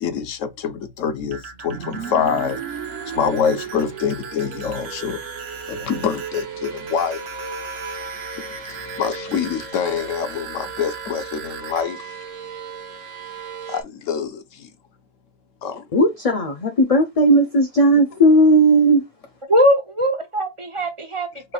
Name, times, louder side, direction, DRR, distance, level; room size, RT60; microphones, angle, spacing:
voice 1, 0.0-2.8 3.1-5.2 5.7-7.2 8.4-12.2 13.7-14.7 15.6-15.9 20.8-20.9, left 7 dB, 80° left, 1.1 m, -26 dB
sound 1, 1.2-11.8, right 5 dB, 60° right, 1.0 m, -38 dB
sound 2, 1.7-13.8, right 6 dB, 85° right, 1.4 m, -35 dB
voice 2, 15.9-19.0, right 1 dB, 40° left, 0.5 m, -16 dB
voice 3, 19.5-21.5, equal, 30° right, 0.7 m, -20 dB
5.9 x 3.3 x 2.3 m
omnidirectional pair, 1.3 m